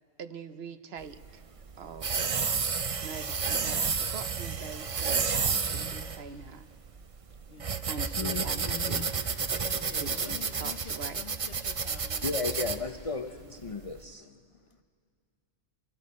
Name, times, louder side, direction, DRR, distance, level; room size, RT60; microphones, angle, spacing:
voice 1, 0.2-1.2 1.8-2.1 3.0-6.7 7.9-9.1 10.0-11.2, right 5 dB, 65° right, 10 dB, 1.0 m, -43 dB
sound 1, 1.0-14.0, right 5 dB, 40° right, 0.6 m, -31 dB
voice 2, 5.3-6.0 7.5-8.2 9.6-12.3 12.7-14.4, left 7 dB, 60° left, 10 dB, 0.9 m, -49 dB
voice 3, 8.2-9.1 12.2-14.3, left 4 dB, 40° left, 5 dB, 0.5 m, -35 dB
27.5 x 23.0 x 4.2 m, 2.2 s
omnidirectional pair, 1.2 m